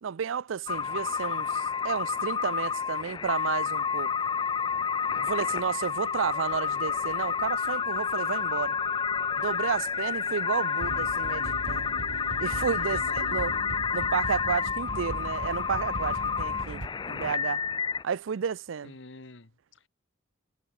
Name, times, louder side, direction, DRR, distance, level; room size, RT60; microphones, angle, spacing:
voice 1, 0.0-4.1 5.2-8.8 9.4-11.9 12.4-13.5 13.9-17.7 18.0-18.9, right 7 dB, 85° right, 0.5 m, -32 dB
sound 1, 0.7-18.0, left 6 dB, 25° left, 0.3 m, -30 dB
sound 2, 10.8-16.9, right 2 dB, 70° right, 1.1 m, -39 dB
voice 2, 12.7-13.4 18.8-19.9, left 3 dB, 70° left, 1.4 m, -48 dB
head